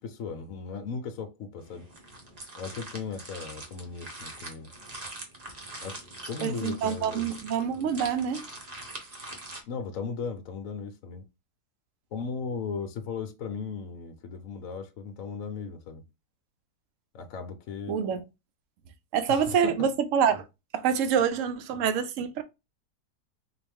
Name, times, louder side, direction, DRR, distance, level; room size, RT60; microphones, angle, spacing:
voice 1, 0.0-1.9 2.6-4.7 5.8-6.0 6.3-7.3 9.6-11.2 12.1-16.0 17.1-18.0 19.3-19.9, left 5 dB, 65° left, 1.0 m, -37 dB
sound 1, 1.6-9.6, right 2 dB, 35° right, 0.7 m, -43 dB
voice 2, 6.4-8.5 17.9-18.2 19.1-20.4 20.7-22.4, right 7 dB, 65° right, 0.8 m, -26 dB
3.9 x 2.5 x 3.4 m
omnidirectional pair, 1.8 m